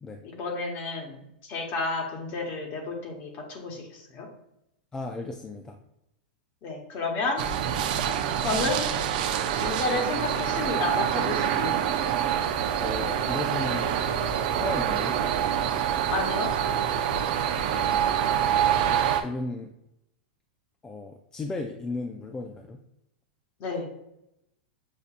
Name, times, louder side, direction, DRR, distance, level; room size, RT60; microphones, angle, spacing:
voice 1, 0.2-4.3 6.6-7.4 8.4-8.9 9.6-11.8 16.1-16.5 23.6-23.9, left 3 dB, 40° left, 2 dB, 1.2 m, -31 dB
voice 2, 4.9-5.8 12.8-13.9 14.5-15.2 17.6-18.2 19.2-19.7 20.8-22.8, left 3 dB, 15° left, 3 dB, 0.3 m, -35 dB
sound 1, 7.4-19.2, right 9 dB, 60° right, 0.5 m, -26 dB
6.6 x 2.6 x 2.5 m, 0.82 s
supercardioid pair, 140°, 5 cm